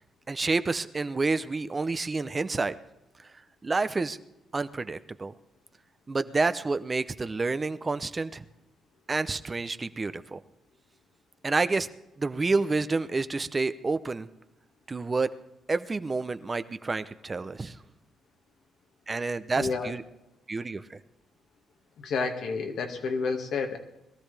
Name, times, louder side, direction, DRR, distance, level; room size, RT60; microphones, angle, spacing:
voice 1, 0.3-2.7 3.2-3.3 3.6-4.2 4.5-5.3 6.1-8.4 9.1-10.4 11.4-11.9 12.2-14.3 14.9-15.3 15.7-17.8 19.1-20.0 20.5-21.0, right 3 dB, 25° right, 12 dB, 0.6 m, -29 dB
voice 2, 19.6-19.9 22.0-23.8, left 4 dB, 70° left, 4 dB, 1.9 m, -30 dB
21.5 x 13.5 x 3.4 m, 0.89 s
cardioid pair, 90°, 0 cm